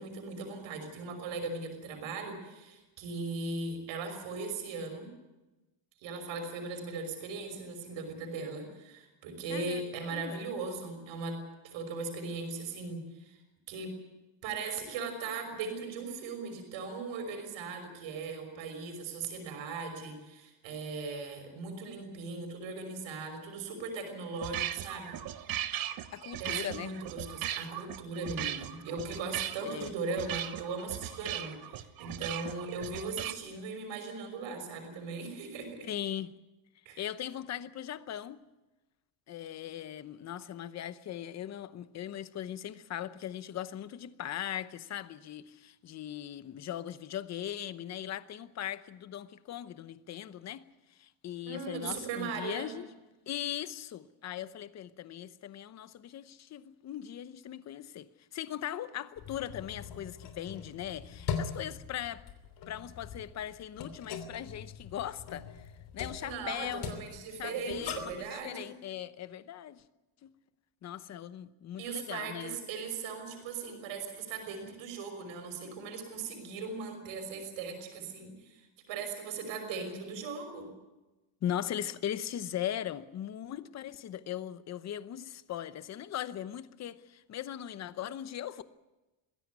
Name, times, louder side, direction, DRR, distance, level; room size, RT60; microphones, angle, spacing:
voice 1, 0.0-5.1 6.0-11.4 11.6-13.4 13.7-13.9 14.4-25.5 26.4-35.9 36.9-37.0 51.4-52.7 66.2-68.7 71.8-80.7, right 4 dB, 70° right, 5.9 m, -39 dB
voice 2, 9.5-9.8 10.1-10.4 26.1-26.9 29.6-29.9 35.8-36.3 37.0-38.4 39.3-50.7 51.0-52.9 53.3-62.2 62.7-65.5 65.9-67.0 67.4-69.8 70.2-70.3 70.8-72.6 81.4-88.6, left 11 dB, 35° left, 0.8 m, -39 dB
sound 1, 24.4-33.3, right 11 dB, 45° right, 1.2 m, -38 dB
sound 2, 59.2-68.3, left 6 dB, 55° left, 3.3 m, -41 dB
21.5 x 16.5 x 9.5 m
cardioid pair, 170°, 49 cm